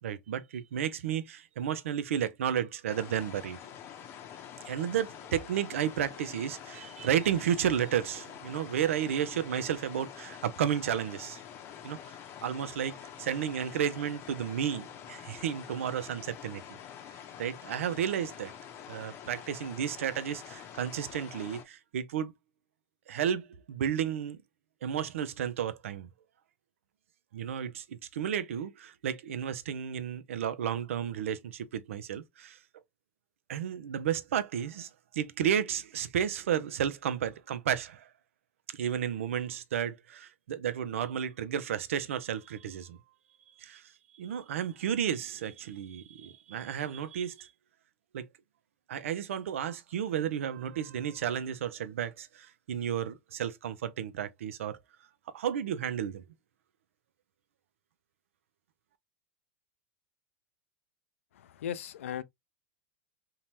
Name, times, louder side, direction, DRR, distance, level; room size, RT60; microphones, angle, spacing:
voice 1, 0.0-3.6 4.7-11.4 11.8-12.1 12.4-16.6 17.4-18.5 18.9-22.3 23.1-24.4 24.8-26.1 27.3-32.6 33.5-38.1 38.7-43.0 43.6-43.8 44.2-47.5 48.1-48.3 48.9-54.8 55.3-56.2, right 9 dB, 85° right, 0.5 m, -32 dB
sound 1, 2.9-21.6, left 9 dB, 35° left, 0.6 m, -47 dB
voice 2, 61.4-62.2, left 9 dB, 85° left, 0.4 m, -37 dB
2.7 x 2.2 x 3.1 m
supercardioid pair, 135°, 7 cm